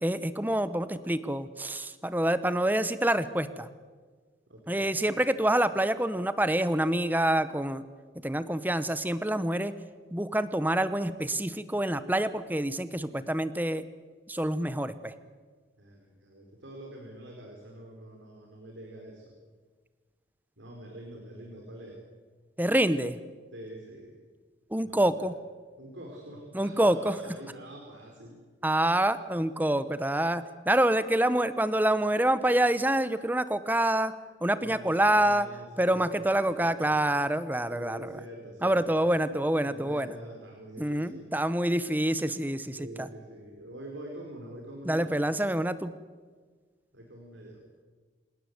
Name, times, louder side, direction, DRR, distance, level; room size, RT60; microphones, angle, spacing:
voice 1, 0.0-3.7 4.7-7.8 8.2-9.7 10.1-13.9 14.3-15.1 22.6-23.2 24.7-25.4 26.5-27.4 28.6-34.1 34.4-35.5 35.8-38.2 38.6-40.1 40.8-43.1 44.8-45.9, right 1 dB, 10° right, 13 dB, 0.9 m, -27 dB
voice 2, 4.5-5.0 15.8-19.3 20.6-22.0 23.5-24.2 24.8-25.3 25.8-28.4 34.5-37.0 37.7-39.2 39.6-41.3 42.8-45.2 46.9-47.6, right 1 dB, 90° right, 1 dB, 4.5 m, -45 dB
27.0 x 18.0 x 8.0 m, 1.5 s
head